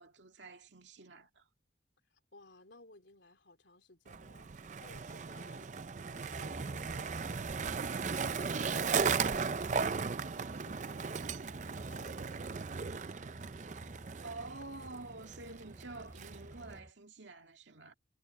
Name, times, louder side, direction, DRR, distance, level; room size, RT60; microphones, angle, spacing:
voice 1, 0.0-1.4 8.5-8.8 14.2-17.9, right 2 dB, 75° right, 2.1 m, -48 dB
voice 2, 2.1-12.6, left 2 dB, 70° left, 3.5 m, -60 dB
Skateboard, 4.1-16.8, right 5 dB, 40° right, 0.5 m, -37 dB
Mechanisms, 4.6-5.2 5.5-5.7 6.0-14.1, right 1 dB, 55° right, 4.4 m, -63 dB
sound 1, 6.2-16.9, equal, 15° right, 2.7 m, -52 dB
head